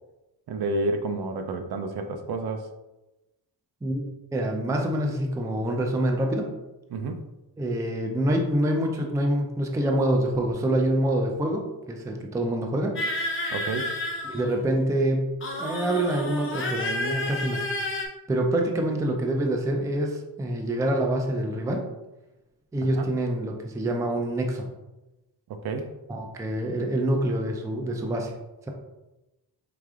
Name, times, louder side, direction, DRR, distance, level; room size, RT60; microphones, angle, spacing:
voice 1, 0.5-2.7 6.9-7.2 13.5-13.9 23.0-23.1 25.6-25.9, right 2 dB, 70° right, 7 dB, 0.5 m, -29 dB
voice 2, 4.3-6.5 7.6-13.0 14.2-17.7 18.3-21.9 22.7-24.7 26.1-28.3, right 1 dB, 10° right, 2 dB, 0.3 m, -26 dB
sound 1, 13.0-14.8 15.4-18.1, left 1 dB, 30° left, 0.7 m, -31 dB
4.9 x 3.7 x 2.4 m, 1.0 s
wide cardioid pair, 175°, 39 cm